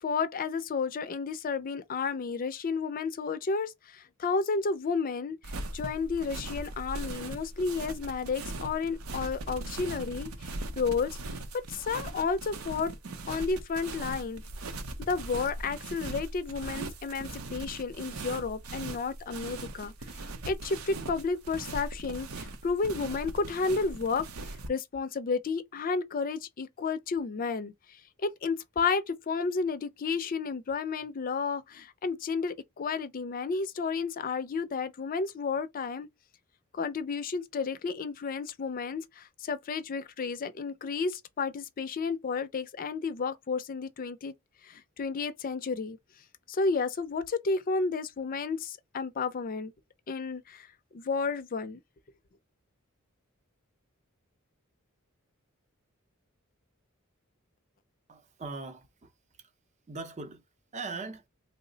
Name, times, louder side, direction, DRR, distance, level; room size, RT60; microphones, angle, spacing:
voice 1, 0.0-5.4 5.7-11.4 11.7-12.9 13.3-14.4 15.0-19.9 20.5-24.3 24.7-27.7 28.2-36.1 36.7-44.3 44.6-46.0 46.5-49.7 50.1-50.7 50.9-51.8, left 4 dB, 40° left, 0.4 m, -32 dB
sound 1, 5.4-24.7, right 2 dB, 75° right, 0.6 m, -40 dB
voice 2, 58.1-59.1 59.4-59.5 59.9-60.4 60.7-61.3, right 3 dB, 35° right, 0.6 m, -40 dB
3.0 x 2.0 x 3.8 m
head